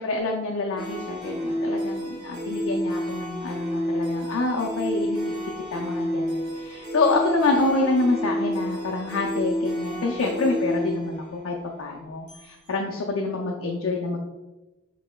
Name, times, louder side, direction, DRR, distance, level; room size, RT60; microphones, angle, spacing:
voice 1, 0.0-5.3 5.7-14.2, left 3 dB, 65° left, 0 dB, 0.5 m, -27 dB
sound 1, 0.8-12.5, equal, 20° right, 0.9 m, -29 dB
6.1 x 3.2 x 2.2 m, 1.1 s
head